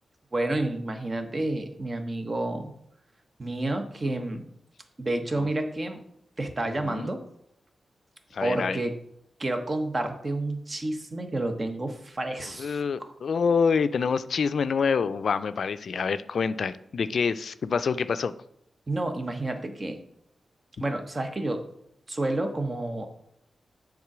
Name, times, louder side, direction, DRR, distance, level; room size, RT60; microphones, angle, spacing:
voice 1, 0.3-2.7 3.4-4.5 5.0-6.0 6.4-7.2 8.4-8.9 9.4-13.1 18.9-20.0 20.8-21.7 22.1-23.1, right 2 dB, 40° right, 6 dB, 1.1 m, -30 dB
voice 2, 8.3-8.8 12.6-18.3, left 5 dB, 70° left, 13 dB, 0.3 m, -26 dB
7.3 x 3.8 x 6.0 m, 0.75 s
supercardioid pair, 40°, 0 cm